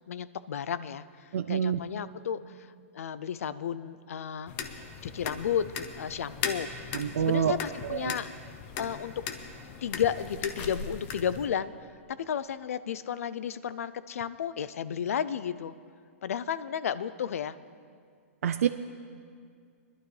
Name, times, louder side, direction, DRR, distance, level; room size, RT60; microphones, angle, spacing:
voice 1, 0.1-2.6 2.9-4.5 5.0-6.9 7.2-8.3 8.8-9.2 9.8-11.7 12.1-15.7 16.2-17.6, left 8 dB, 80° left, 16 dB, 0.4 m, -33 dB
voice 2, 1.3-1.8 6.9-7.6 7.9-8.1 18.4-18.7, right 9 dB, 75° right, 10 dB, 0.4 m, -27 dB
sound 1, 4.5-11.5, left 6 dB, 25° left, 0.6 m, -38 dB
20.5 x 11.5 x 3.3 m, 2.2 s
hypercardioid pair, 165°, 8 cm